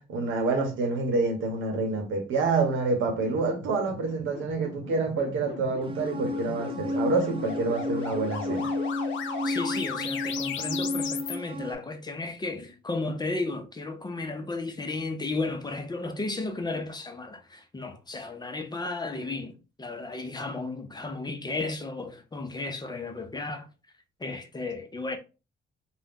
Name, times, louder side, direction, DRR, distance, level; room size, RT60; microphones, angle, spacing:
voice 1, 0.0-8.7, right 3 dB, 80° right, 1.0 m, -27 dB
sound 1, 2.9-11.3, left 7 dB, 75° left, 0.5 m, -37 dB
sound 2, 5.8-11.7, left 1 dB, 25° right, 0.5 m, -32 dB
voice 2, 9.4-23.7 24.2-25.2, left 3 dB, 20° left, 0.5 m, -34 dB
2.5 x 2.1 x 3.5 m
cardioid pair, 90°, 20 cm